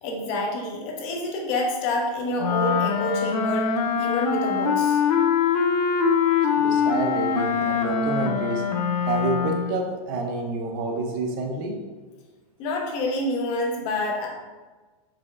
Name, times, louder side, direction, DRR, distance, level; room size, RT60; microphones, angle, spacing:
voice 1, 0.0-5.0 12.6-14.3, left 1 dB, 35° left, 0 dB, 0.8 m, -27 dB
Wind instrument woodwind instrument, 2.4-9.8, left 6 dB, 90° left, 0.5 m, -23 dB
voice 2, 6.5-8.6 9.1-11.8, right 3 dB, 35° right, 3 dB, 0.6 m, -28 dB
5.0 x 4.3 x 2.4 m, 1.3 s
supercardioid pair, 165°, 19 cm